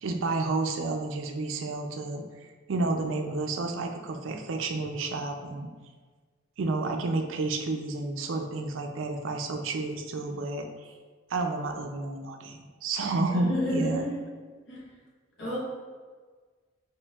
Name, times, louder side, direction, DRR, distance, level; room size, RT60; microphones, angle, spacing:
voice 1, 0.0-2.2 2.7-5.7 6.6-10.7 11.3-14.1, right 3 dB, 80° right, 4 dB, 0.4 m, -30 dB
voice 2, 13.3-14.3 14.7-14.9 15.4-15.6, left 1 dB, 70° left, -7 dB, 1.1 m, -31 dB
4.4 x 3.1 x 2.3 m, 1.5 s
head